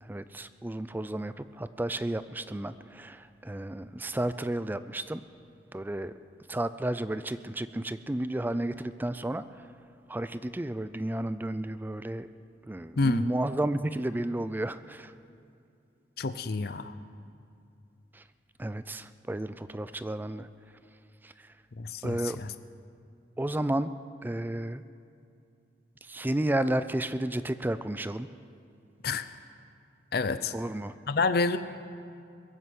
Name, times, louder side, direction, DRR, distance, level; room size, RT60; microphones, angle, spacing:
voice 1, 0.0-5.2 5.7-6.1 6.5-9.7 10.1-12.3 12.6-15.1 18.1-18.2 18.6-20.5 21.2-21.5 22.0-22.4 23.4-23.9 24.2-24.8 26.0-28.3 30.5-31.0, right 1 dB, 10° right, 13 dB, 0.4 m, -32 dB
voice 2, 13.0-13.3 16.2-16.9 21.8-22.5 29.0-29.2 30.1-30.5 31.1-31.6, left 3 dB, 60° left, 12 dB, 0.6 m, -28 dB
22.0 x 7.8 x 7.7 m, 2.5 s
head